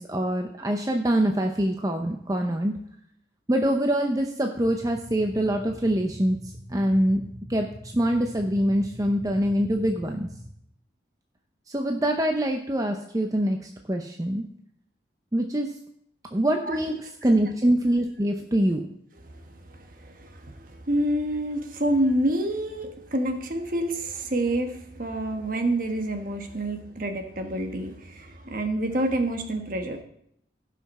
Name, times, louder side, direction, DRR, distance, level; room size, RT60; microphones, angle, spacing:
voice 1, 0.0-2.7 3.5-7.2 7.5-10.3 11.7-14.5 15.3-15.7 16.3-17.0 17.2-18.8, right 1 dB, 20° right, 4 dB, 0.6 m, -24 dB
sound 1, 4.6-10.5, equal, 10° left, 2.5 m, -43 dB
voice 2, 16.7-17.0 17.3-17.5 19.2-30.0, right 1 dB, 50° right, 5 dB, 1.3 m, -28 dB
16.0 x 5.8 x 4.2 m, 0.71 s
head